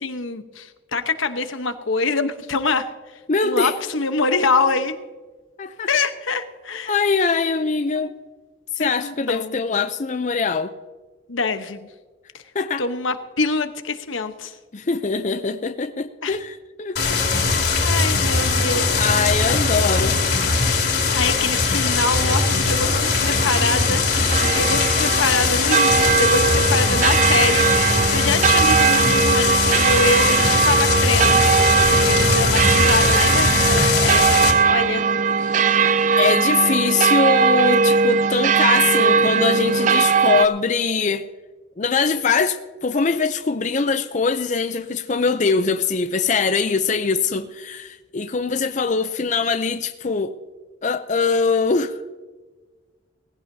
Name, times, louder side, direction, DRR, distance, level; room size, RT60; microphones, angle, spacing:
voice 1, 0.0-2.9 3.4-4.9 5.9-6.9 7.9-8.1 8.8-9.6 11.3-11.9 12.8-14.6 16.2-16.4 17.0-17.2 17.8-19.0 19.5-19.6 21.1-24.0 24.4-27.8 28.1-35.1, left 3 dB, 85° left, 1.0 m, -25 dB
voice 2, 3.3-3.7 5.6-5.9 6.9-8.1 8.8-10.7 12.5-12.8 14.7-17.0 19.0-20.2 36.2-41.3 41.8-50.3 50.8-51.9, left 4 dB, 40° left, 0.5 m, -22 dB
sound 1, 17.0-34.5, left 4 dB, 60° left, 2.8 m, -20 dB
sound 2, 21.9-40.5, right 5 dB, 40° right, 0.4 m, -19 dB
19.0 x 16.0 x 2.8 m
head